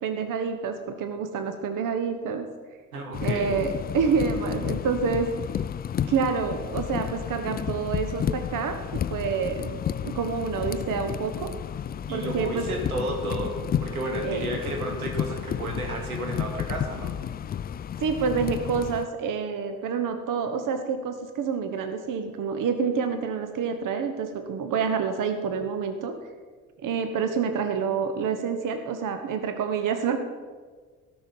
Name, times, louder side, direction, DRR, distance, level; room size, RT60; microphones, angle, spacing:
voice 1, 0.0-2.5 3.2-5.3 6.1-11.5 12.1-12.6 14.2-14.6 18.0-26.1 26.8-30.2, right 6 dB, 45° right, 7 dB, 1.2 m, -28 dB
voice 2, 2.9-3.6 12.1-17.1, right 1 dB, 85° right, 1 dB, 2.3 m, -32 dB
sound 1, 3.1-19.1, left 9 dB, 25° left, 0.4 m, -32 dB
17.5 x 6.1 x 5.4 m, 1.5 s
figure-of-eight pair, 50°, 43 cm